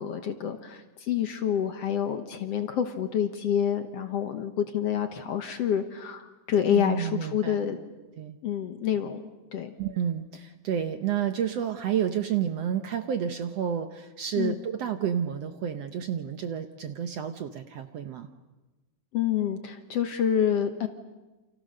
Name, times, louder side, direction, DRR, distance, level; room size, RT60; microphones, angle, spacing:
voice 1, 0.0-7.8 8.4-9.2 9.5-9.7 14.4-14.6 19.1-20.9, left 9 dB, 60° left, 7 dB, 1.9 m, -28 dB
voice 2, 6.7-7.6 8.2-8.4 9.8-18.3, right 9 dB, 65° right, 8 dB, 1.7 m, -30 dB
29.0 x 28.5 x 6.6 m, 1.2 s
omnidirectional pair, 3.8 m